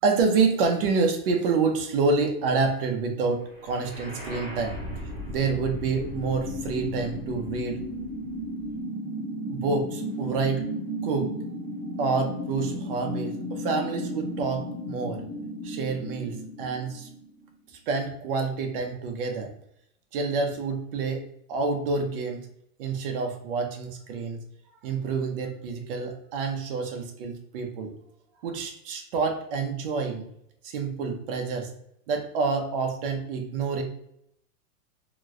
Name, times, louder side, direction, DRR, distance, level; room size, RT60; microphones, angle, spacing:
voice 1, 0.0-4.8 5.3-7.8 9.5-10.6 11.0-11.3 12.0-15.2 15.6-17.1 17.9-19.5 20.1-22.5 22.8-24.4 24.8-27.9 28.4-30.3 30.6-31.7 32.1-33.8, right 4 dB, 40° right, 3 dB, 0.5 m, -28 dB
sound 1, 3.5-17.5, equal, 5° left, 0.6 m, -34 dB
3.0 x 2.0 x 3.5 m, 0.74 s
supercardioid pair, 160°, 46 cm